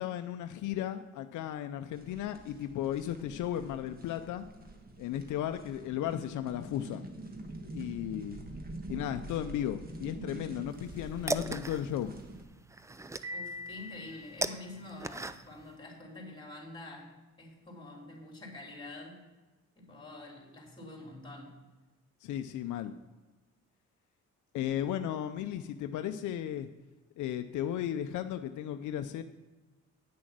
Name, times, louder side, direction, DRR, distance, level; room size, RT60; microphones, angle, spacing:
voice 1, 0.0-4.4 5.0-7.0 7.7-8.4 8.9-12.1 22.2-22.9 24.5-26.7 27.2-29.2, left 11 dB, 80° left, 8 dB, 0.6 m, -35 dB
sound 1, 1.9-12.5, right 2 dB, 30° right, 1.4 m, -46 dB
sound 2, 10.7-15.7, right 2 dB, 10° right, 0.4 m, -38 dB
Piano, 13.2-15.2, left 1 dB, 60° right, 2.4 m, -44 dB
voice 2, 13.3-17.1 17.4-19.3 19.7-21.5, left 2 dB, 15° left, 0 dB, 3.6 m, -47 dB
9.4 x 6.3 x 6.0 m, 1.2 s
cardioid pair, 90°, 30 cm